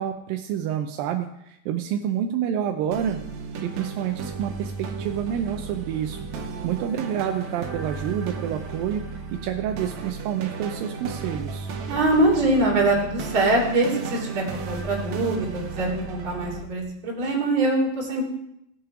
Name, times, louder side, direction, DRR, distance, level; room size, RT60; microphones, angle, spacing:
voice 1, 0.0-3.2 3.6-6.3 6.6-9.1 9.3-11.7, right 9 dB, 80° right, 5 dB, 2.3 m, -28 dB
sound 1, 2.9-16.6, right 4 dB, 65° right, 2.0 m, -34 dB
voice 2, 11.9-18.2, right 2 dB, 35° right, -3 dB, 3.3 m, -23 dB
17.5 x 6.0 x 4.8 m, 0.78 s
omnidirectional pair, 4.1 m